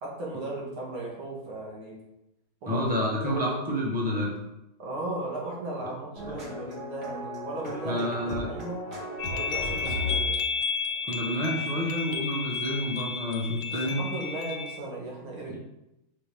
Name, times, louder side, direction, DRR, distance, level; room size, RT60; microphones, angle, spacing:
voice 1, 0.0-2.0 2.6-3.0 3.2-3.8 4.8-8.9 9.3-10.4 13.7-15.6, right 2 dB, 85° right, -4 dB, 2.7 m, -36 dB
voice 2, 2.7-4.3 7.8-8.5 9.8-9.9 11.0-14.0, equal, 5° right, -3 dB, 1.1 m, -29 dB
sound 1, 6.2-10.6, equal, 35° right, 1.9 m, -36 dB
sound 2, 9.2-14.8, left 5 dB, 80° left, 0.8 m, -32 dB
6.0 x 5.7 x 3.8 m, 0.89 s
omnidirectional pair, 2.2 m